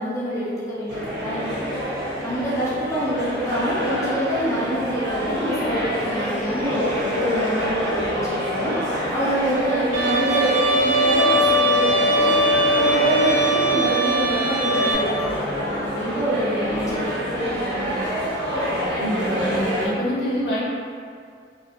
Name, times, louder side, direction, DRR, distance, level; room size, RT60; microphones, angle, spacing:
voice 1, 0.0-1.5 2.2-8.7 9.1-12.3 12.7-18.0, equal, 15° left, -10 dB, 0.5 m, -26 dB
sound 1, 0.9-19.9, equal, 85° right, 1.0 m, -27 dB
Bowed string instrument, 9.9-14.9, right 1 dB, 65° right, 0.7 m, -20 dB
voice 2, 18.9-20.6, equal, 65° left, -6 dB, 0.6 m, -26 dB
2.3 x 2.2 x 2.6 m, 2.2 s
head